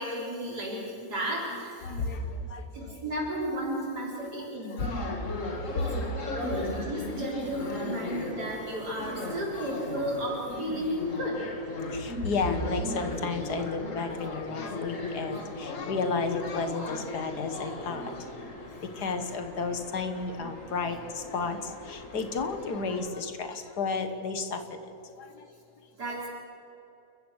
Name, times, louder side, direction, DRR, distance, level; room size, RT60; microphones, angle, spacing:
voice 1, 0.0-2.1 2.7-4.8 5.7-5.9 6.2-11.4 26.0-26.3, right 1 dB, 70° right, -3 dB, 4.5 m, -33 dB
voice 2, 1.8-3.0 4.7-5.5 11.9-18.3 19.0-24.8 25.2-25.5, left 4 dB, 70° left, 8 dB, 2.0 m, -33 dB
sound 1, 4.8-23.1, left 2 dB, 50° left, 2.3 m, -37 dB
29.5 x 14.5 x 6.5 m, 3.0 s
omnidirectional pair, 1.8 m